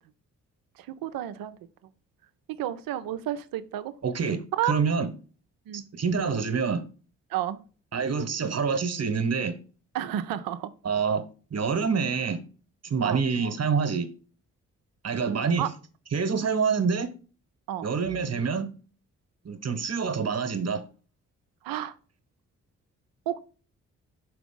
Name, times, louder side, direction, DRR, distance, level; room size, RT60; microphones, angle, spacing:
voice 1, 0.8-1.6 2.6-3.9 4.5-4.8 5.7-5.8 7.3-7.6 9.9-10.7 13.0-13.2 15.6-15.7 17.7-17.9 21.6-21.9 23.3-23.4, right 11 dB, 65° right, 0.8 m, -31 dB
voice 2, 4.0-5.1 5.7-6.8 7.9-9.6 10.8-11.2 11.5-12.4 12.8-14.1 15.0-15.7 16.1-17.1 17.8-18.7 19.4-20.8, right 5 dB, 45° right, 1.3 m, -26 dB
5.9 x 5.0 x 3.7 m
hypercardioid pair, 40°, 37 cm